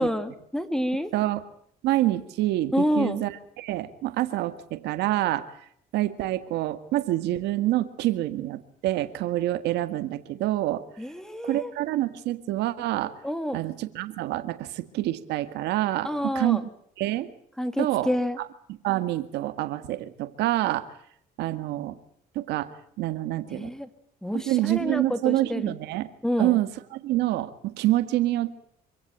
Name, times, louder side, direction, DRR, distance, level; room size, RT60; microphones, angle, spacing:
voice 1, 0.0-1.1 2.7-3.2 11.0-11.7 13.2-13.6 16.0-16.6 17.6-18.4 23.5-23.9 24.2-25.7 26.2-26.6, equal, 5° left, 10 dB, 2.5 m, -28 dB
voice 2, 1.8-5.5 5.9-10.8 11.4-13.1 13.5-16.7 17.0-17.3 17.8-18.1 18.4-20.9 21.4-22.0 22.4-23.7 24.4-26.1 26.4-28.6, right 15 dB, 85° right, 11 dB, 1.8 m, -27 dB
26.0 x 17.0 x 9.0 m, 0.68 s
cardioid pair, 110°, 17 cm